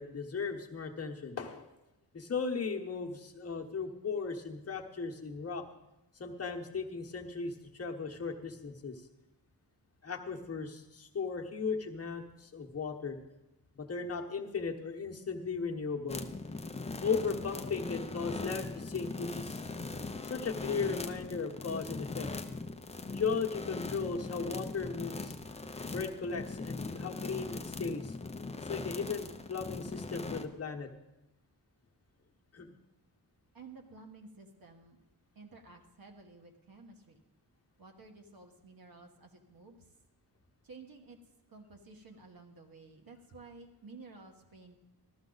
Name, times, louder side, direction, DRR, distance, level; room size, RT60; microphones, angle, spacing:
voice 1, 0.0-1.7 2.1-5.6 6.2-9.0 10.0-13.2 13.8-16.2 17.0-19.6 20.2-22.3 23.1-25.3 25.9-28.2 28.6-30.9 32.5-32.7, left 5 dB, 35° left, 2 dB, 1.2 m, -36 dB
sound 1, 16.1-30.4, left 3 dB, 15° left, 0.6 m, -40 dB
voice 2, 33.5-35.0 35.3-37.2 37.8-39.8 40.6-41.2 41.5-44.8, right 3 dB, 55° right, 3 dB, 1.5 m, -53 dB
15.0 x 13.0 x 4.0 m, 0.95 s
wide cardioid pair, 170°, 41 cm